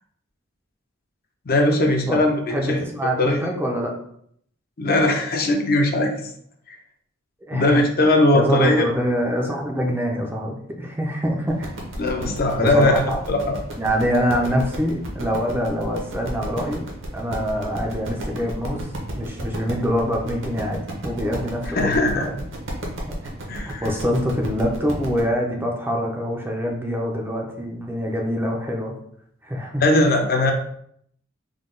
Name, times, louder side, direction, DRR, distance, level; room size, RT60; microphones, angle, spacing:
voice 1, 1.5-2.8 3.2-3.5 4.8-6.3 6.7-6.8 7.5-8.9 12.0-13.0 13.3-13.6 21.7-22.3 23.5-23.9 29.8-30.5, left 2 dB, 45° left, 3 dB, 0.6 m, -19 dB
voice 2, 2.5-3.9 7.5-7.8 8.3-11.7 12.6-13.2 13.8-16.9 17.1-18.9 19.2-22.3 22.8-22.9 23.6-28.9 29.4-30.1, equal, 10° right, 0 dB, 0.5 m, -25 dB
sound 1, 11.5-25.2, right 1 dB, 65° right, 0.9 m, -33 dB
3.7 x 2.3 x 3.7 m, 0.67 s
head